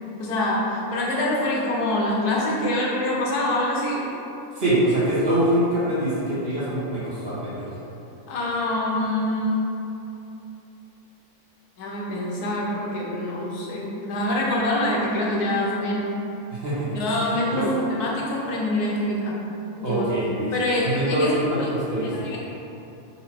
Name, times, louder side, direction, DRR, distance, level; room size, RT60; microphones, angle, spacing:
voice 1, 0.2-4.1 8.3-9.6 11.8-16.0 16.9-19.4 19.8-20.0 20.5-21.7 22.0-22.4, left 1 dB, 85° left, -4 dB, 1.3 m, -25 dB
voice 2, 4.5-7.8 16.5-17.7 19.8-20.5 20.8-22.3, right 1 dB, 45° right, -9 dB, 1.1 m, -24 dB
4.1 x 2.9 x 4.2 m, 2.9 s
omnidirectional pair, 1.6 m